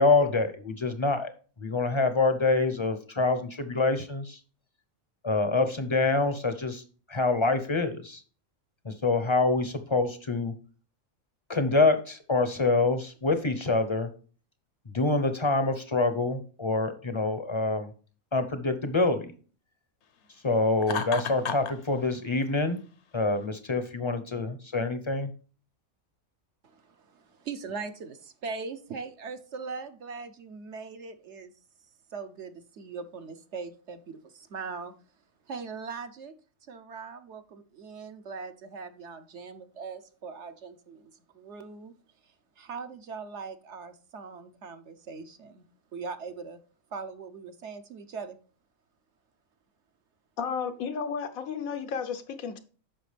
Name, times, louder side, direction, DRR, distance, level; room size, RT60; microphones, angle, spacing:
voice 1, 0.0-1.3 1.6-4.4 5.2-8.2 8.8-10.5 11.5-14.1 14.9-17.9 18.3-19.3 20.4-22.8 23.1-25.3, left 3 dB, 30° left, 0.7 m, -26 dB
Laughter, 20.8-21.8, left 6 dB, 60° left, 1.0 m, -31 dB
voice 2, 26.6-31.5 32.1-34.9 35.5-36.3 36.7-41.9 42.2-45.6 45.9-46.6 46.9-48.4, right 5 dB, 60° right, 1.1 m, -40 dB
voice 3, 50.4-52.6, left 6 dB, 80° left, 1.3 m, -33 dB
9.1 x 6.0 x 3.3 m
omnidirectional pair, 1.4 m